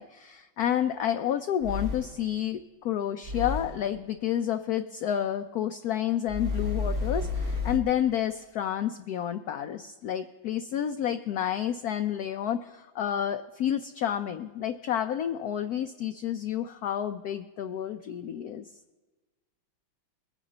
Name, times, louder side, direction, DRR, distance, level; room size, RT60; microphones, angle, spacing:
voice 1, 0.0-18.7, left 10 dB, 75° left, 8 dB, 0.8 m, -30 dB
sound 1, 0.6-0.7 1.6-2.3 3.2-3.9 6.3-7.8, left 4 dB, 50° right, 1.5 m, -31 dB
22.5 x 9.5 x 3.9 m, 1.3 s
omnidirectional pair, 2.2 m